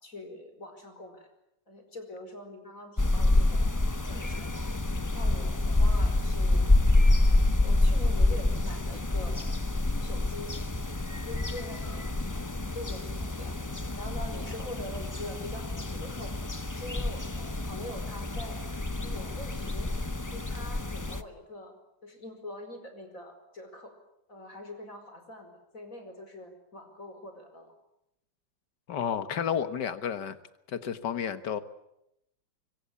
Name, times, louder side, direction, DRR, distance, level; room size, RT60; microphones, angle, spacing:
voice 1, 0.0-1.3 1.7-3.6 4.0-4.7 5.1-6.7 7.1-9.4 10.0-10.5 11.0-12.5 12.7-13.6 14.0-16.3 16.7-18.6 19.0-19.9 20.3-21.8 22.0-23.9 24.3-27.7, left 1 dB, 45° left, 6 dB, 5.4 m, -44 dB
sound 1, 3.0-21.2, left 2 dB, 20° left, 0.5 m, -27 dB
voice 2, 28.9-30.4 30.7-31.6, left 8 dB, 65° left, 12 dB, 2.0 m, -31 dB
24.5 x 24.5 x 8.4 m, 0.81 s
omnidirectional pair, 2.0 m